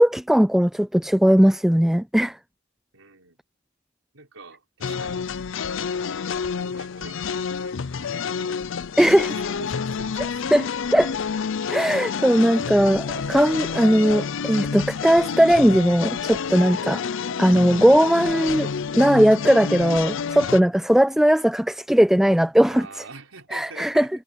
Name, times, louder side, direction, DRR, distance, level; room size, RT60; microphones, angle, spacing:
voice 1, 0.0-2.4 9.0-9.3 10.5-10.6 10.9-11.1 11.7-17.0 17.4-18.7 18.9-22.9 23.5-24.1, equal, ahead, 0.3 m, -18 dB
voice 2, 2.9-3.4 4.1-5.3 6.5-8.6 9.0-10.5 12.5-12.8 22.6-24.1, right 3 dB, 85° right, 4.7 m, -45 dB
sound 1, 4.8-20.6, left 6 dB, 65° left, 0.5 m, -29 dB
head